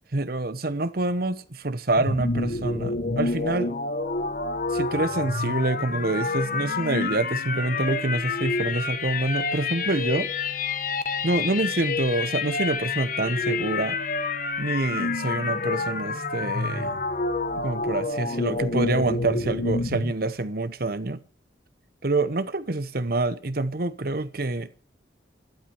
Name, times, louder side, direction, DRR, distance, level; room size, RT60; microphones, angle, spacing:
voice 1, 0.1-3.7 4.7-10.3 11.2-14.0 14.6-17.0 17.6-21.2 22.0-24.7, right 2 dB, 50° right, 1.0 m, -26 dB
sound 1, 2.0-20.1, left 3 dB, 45° left, 1.2 m, -28 dB
13.0 x 12.0 x 7.0 m
head